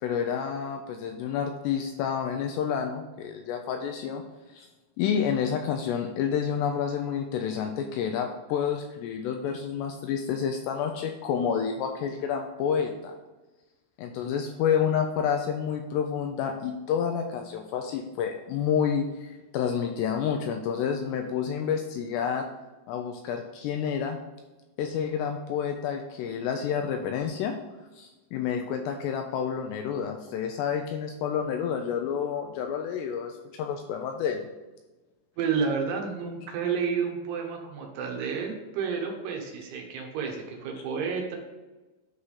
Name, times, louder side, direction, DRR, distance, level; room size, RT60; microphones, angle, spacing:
voice 1, 0.0-4.2 4.5-4.7 5.0-13.1 14.0-22.4 22.9-24.2 24.8-27.6 28.0-34.5, left 7 dB, 85° left, 5 dB, 2.5 m, -29 dB
voice 2, 35.4-41.4, right 6 dB, 75° right, 1 dB, 2.8 m, -30 dB
9.7 x 3.3 x 5.5 m, 1.1 s
omnidirectional pair, 5.2 m